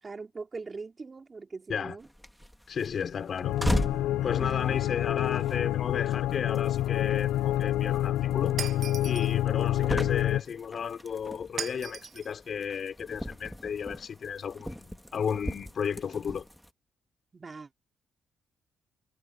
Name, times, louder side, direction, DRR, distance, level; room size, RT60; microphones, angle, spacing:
voice 1, 0.0-2.1 4.4-4.8 17.3-17.7, right 4 dB, 30° right, 2.9 m, -41 dB
sound 1, 2.0-16.7, equal, ahead, 1.8 m, -39 dB
voice 2, 2.7-3.6 4.2-8.6 9.0-16.5, left 7 dB, 55° left, 4.3 m, -33 dB
sound 2, 3.4-10.4, left 13 dB, 85° left, 0.4 m, -27 dB
Shatter, 8.6-9.3 11.6-12.3, right 8 dB, 60° right, 1.1 m, -37 dB
cardioid pair, 90°, 0 cm